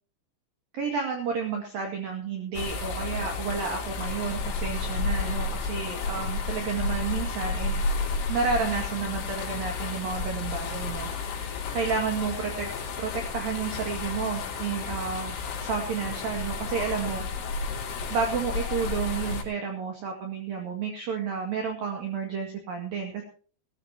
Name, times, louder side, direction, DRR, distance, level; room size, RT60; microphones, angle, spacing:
voice 1, 0.7-7.8 8.3-11.5 11.7-12.7 13.0-17.2 18.1-23.2, right 5 dB, 55° right, 2 dB, 3.3 m, -31 dB
sound 1, 2.5-19.4, left 4 dB, 70° left, 5.7 m, -32 dB
20.5 x 14.5 x 2.9 m, 0.41 s
omnidirectional pair, 6.0 m